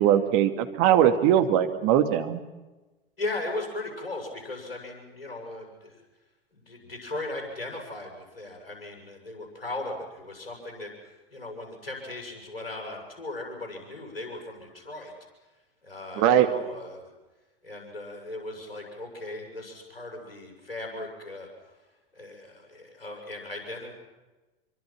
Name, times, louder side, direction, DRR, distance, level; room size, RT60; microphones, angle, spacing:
voice 1, 0.0-2.4 16.2-16.5, right 10 dB, 45° right, 8 dB, 2.4 m, -21 dB
voice 2, 3.2-6.0 6.5-15.1 15.8-17.1 17.6-21.5 22.1-23.9, left 2 dB, 80° left, 2 dB, 7.5 m, -37 dB
26.5 x 24.0 x 6.1 m, 1.1 s
figure-of-eight pair, 90°, 29 cm